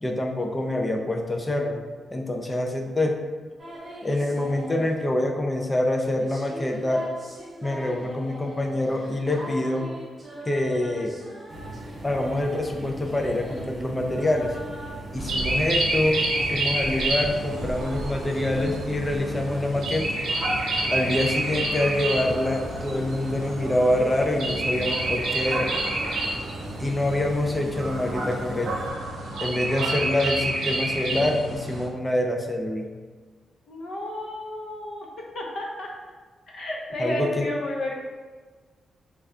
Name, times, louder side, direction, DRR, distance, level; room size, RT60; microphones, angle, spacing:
voice 1, 0.0-1.8 2.1-3.2 4.0-7.1 7.6-9.9 10.5-11.2 12.0-14.6 15.1-16.2 16.5-20.2 20.9-25.7 26.8-28.7 29.4-32.9 37.0-37.5, left 1 dB, 15° left, 2 dB, 0.3 m, -26 dB
sound 1, 3.6-14.9, right 1 dB, 20° right, 0.9 m, -42 dB
sound 2, 11.5-28.9, right 1 dB, 45° right, 0.6 m, -39 dB
sound 3, 15.1-31.8, right 1 dB, 75° right, 0.9 m, -29 dB
voice 2, 33.7-35.1 35.3-35.9 36.5-38.0, left 1 dB, 55° left, -1 dB, 0.7 m, -31 dB
3.1 x 2.3 x 3.6 m, 1.4 s
wide cardioid pair, 150°, 0 cm